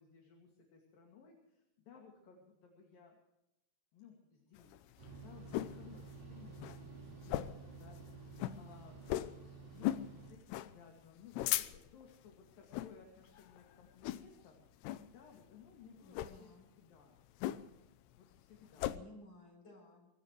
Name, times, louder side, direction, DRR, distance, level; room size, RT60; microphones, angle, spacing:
voice 1, 0.0-3.2 3.9-4.8 5.2-9.3 9.7-14.6 15.1-17.1 18.2-18.9, left 6 dB, 60° left, 0 dB, 4.0 m, -59 dB
sound 1, 4.6-5.8 6.2-6.3 6.5-6.8 7.2-7.7 8.0-8.1 8.4-8.6 9.1-9.4 9.8-10.1 10.5-10.7 11.1-12.0 12.6-12.9 13.4-13.6 14.0-14.4 14.8-15.1 16.1-16.4 17.4-17.9 18.2-19.0, left 14 dB, 85° left, 2.8 m, -37 dB
sound 2, 5.0-10.3, right 4 dB, 60° right, 6.1 m, -52 dB
voice 2, 16.0-16.7 18.5-20.1, left 2 dB, 30° left, -1 dB, 8.6 m, -57 dB
23.5 x 18.0 x 3.2 m, 0.90 s
omnidirectional pair, 4.7 m